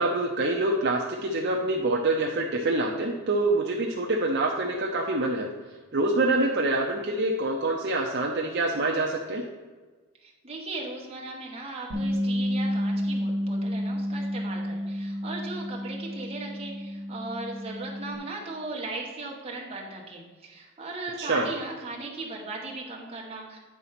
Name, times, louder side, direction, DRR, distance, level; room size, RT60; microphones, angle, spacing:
voice 1, 0.0-5.5 5.9-9.4 21.2-21.5, right 2 dB, 55° right, 0 dB, 0.7 m, -26 dB
voice 2, 10.2-23.6, right 2 dB, 30° right, -2 dB, 1.5 m, -38 dB
Bass guitar, 11.9-18.2, equal, 75° right, 1.3 m, -30 dB
9.4 x 4.1 x 5.9 m, 1.3 s
head